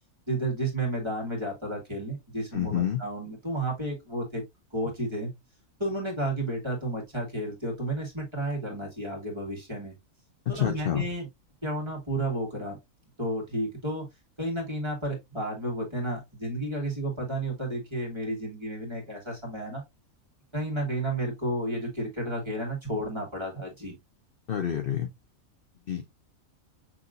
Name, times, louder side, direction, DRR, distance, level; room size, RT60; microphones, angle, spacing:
voice 1, 0.3-4.4 4.7-5.3 5.8-9.9 10.5-11.3 11.6-12.8 13.2-14.1 14.4-19.8 20.5-23.9, right 1 dB, 20° right, 1.9 m, -32 dB
voice 2, 2.5-3.0 10.5-11.0 24.5-25.1 25.9-26.1, left 10 dB, 55° left, 0.7 m, -28 dB
6.1 x 3.1 x 2.5 m
omnidirectional pair, 1.5 m